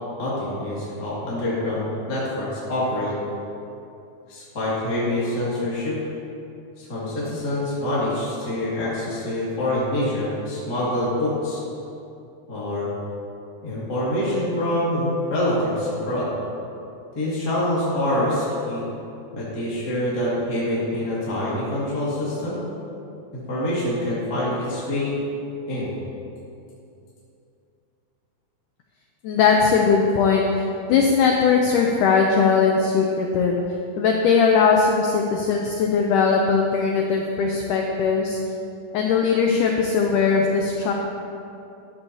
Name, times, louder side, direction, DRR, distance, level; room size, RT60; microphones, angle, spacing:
voice 1, 0.2-3.1 4.3-5.9 6.8-11.6 12.5-12.9 13.6-16.3 17.1-18.8 19.3-22.6 23.3-25.1 25.7-25.9, left 1 dB, 30° left, -9 dB, 2.3 m, -25 dB
voice 2, 29.2-33.6 34.0-38.4 38.9-40.9, left 5 dB, 80° left, 1 dB, 1.9 m, -19 dB
13.0 x 12.5 x 2.8 m, 2.7 s
omnidirectional pair, 4.4 m